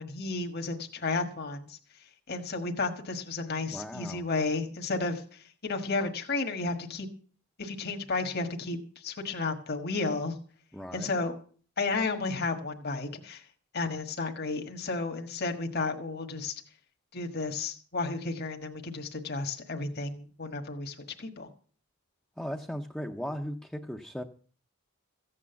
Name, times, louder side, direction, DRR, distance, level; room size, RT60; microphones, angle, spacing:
voice 1, 0.0-1.8 2.3-7.1 7.6-10.4 10.9-11.4 11.8-13.4 13.7-16.6 17.1-21.5, left 3 dB, 50° left, 5 dB, 1.5 m, -32 dB
voice 2, 3.7-4.2 10.7-11.2 22.4-24.2, equal, 5° left, 1 dB, 0.7 m, -37 dB
15.0 x 8.7 x 6.9 m, 0.43 s
head